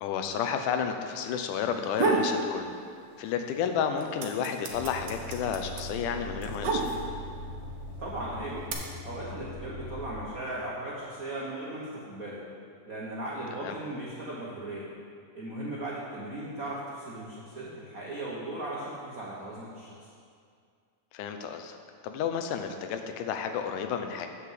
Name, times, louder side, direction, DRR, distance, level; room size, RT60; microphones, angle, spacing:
voice 1, 0.0-2.7 3.2-6.9 13.6-13.8 21.1-21.8 22.0-24.3, left 7 dB, 90° left, 6 dB, 2.3 m, -31 dB
sound 1, 1.7-2.3 2.7-3.5 3.7-7.3 8.1-8.7, right 3 dB, 65° right, 1.1 m, -29 dB
sound 2, 4.7-10.2, left 1 dB, 55° left, 2.5 m, -41 dB
voice 2, 8.0-8.7 9.0-12.4 12.8-14.9 15.3-20.1, right 1 dB, 80° right, -5 dB, 0.7 m, -37 dB
8.3 x 6.7 x 7.4 m, 2.2 s
omnidirectional pair, 3.6 m